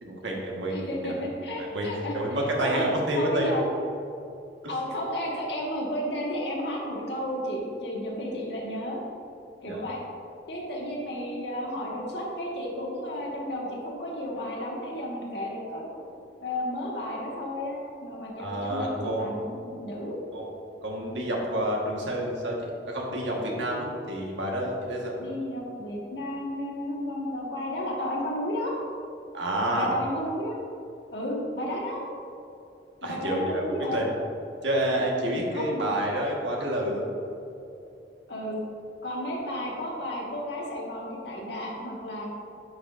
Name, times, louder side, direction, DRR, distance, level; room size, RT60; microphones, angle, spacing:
voice 1, 0.0-1.2 1.6-3.6 9.7-9.8 18.4-19.4 20.3-20.5 20.8-25.1 29.3-29.9 33.0-33.6 33.9-34.1 34.6-37.1, right 1 dB, 85° right, -2 dB, 1.4 m, -29 dB
voice 2, 0.7-2.1 2.6-2.9 3.1-3.6 4.7-9.0 9.6-10.0 10.5-16.0 16.4-20.2 23.9-24.0 25.2-28.7 29.7-30.6 31.1-32.0 33.0-34.0 35.5-35.8 38.3-38.6 39.0-42.3, left 1 dB, 70° left, -3 dB, 1.5 m, -32 dB
9.2 x 6.5 x 2.5 m, 2.7 s
head